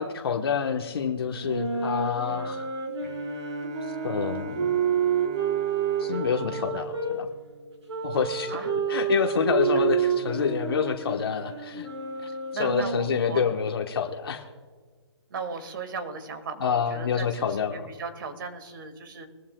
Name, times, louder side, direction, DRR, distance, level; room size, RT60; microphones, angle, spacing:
voice 1, 0.0-2.6 4.0-4.7 6.0-7.3 8.0-8.6 8.9-11.9 12.2-12.3 12.6-14.4 16.6-17.8, left 6 dB, 55° left, 3 dB, 1.2 m, -27 dB
sound 1, 1.3-7.2 7.9-13.3, right 6 dB, 75° right, 4.4 m, -29 dB
voice 2, 2.3-2.6 8.5-8.7 9.7-9.9 12.5-13.4 15.3-19.3, right 4 dB, 50° right, 8 dB, 1.9 m, -37 dB
Bowed string instrument, 3.0-8.3, right 5 dB, 30° right, 1.2 m, -42 dB
21.5 x 14.5 x 2.3 m, 1.6 s
hypercardioid pair, 150°, 15 cm